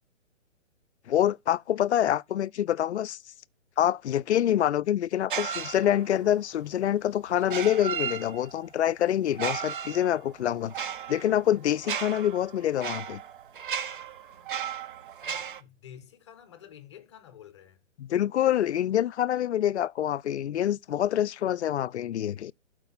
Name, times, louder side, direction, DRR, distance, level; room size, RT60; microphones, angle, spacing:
voice 1, 1.1-3.2 3.8-13.2 18.0-22.5, left 11 dB, 65° left, 0.5 m, -26 dB
sound 1, 5.3-6.3 7.4-8.7 9.3-15.6, right 8 dB, 45° right, 0.7 m, -35 dB
voice 2, 15.2-17.8, left 9 dB, 25° left, 0.7 m, -50 dB
12.0 x 4.6 x 4.0 m
hypercardioid pair, 160°, 37 cm